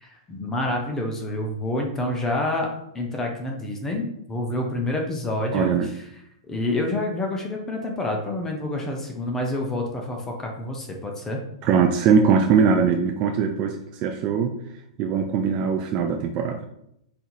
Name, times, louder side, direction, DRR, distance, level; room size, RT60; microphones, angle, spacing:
voice 1, 0.0-2.7 2.9-6.0 6.5-11.4, left 1 dB, 15° left, 1 dB, 0.6 m, -28 dB
voice 2, 5.5-5.9 11.6-14.6 15.0-16.6, right 6 dB, 35° right, 3 dB, 0.4 m, -21 dB
4.2 x 2.8 x 3.9 m, 0.77 s
hypercardioid pair, 140°, 3 cm